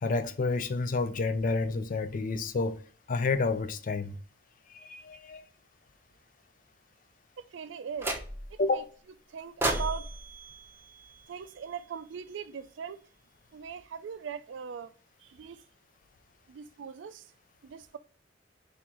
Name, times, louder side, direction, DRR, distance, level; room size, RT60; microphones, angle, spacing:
voice 1, 0.0-2.8 3.1-4.1 4.7-5.4 8.6-8.8, left 3 dB, 45° left, 0.4 m, -29 dB
voice 2, 7.5-8.2 8.5-8.8 9.3-10.1 11.3-13.0 13.5-14.9 15.2-15.6 16.5-17.3 17.6-18.0, right 6 dB, 85° right, 0.4 m, -40 dB
sound 1, 8.0-8.7 9.6-11.8, right 1 dB, 15° right, 0.7 m, -35 dB
3.8 x 3.5 x 2.9 m
head